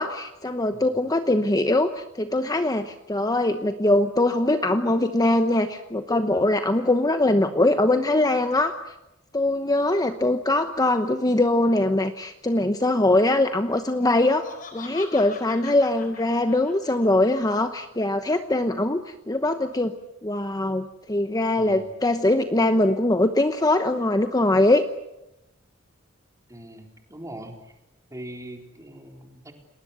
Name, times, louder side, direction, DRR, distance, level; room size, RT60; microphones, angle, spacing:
voice 1, 0.0-8.8 9.3-19.9 20.2-24.9, left 2 dB, 20° left, 8 dB, 1.0 m, -22 dB
Laughter, 14.0-17.3, left 4 dB, 45° left, 4.7 m, -43 dB
voice 2, 21.6-21.9 26.5-27.8 28.1-29.5, right 1 dB, 15° right, 3 dB, 3.9 m, -41 dB
30.0 x 20.0 x 8.2 m, 0.91 s
head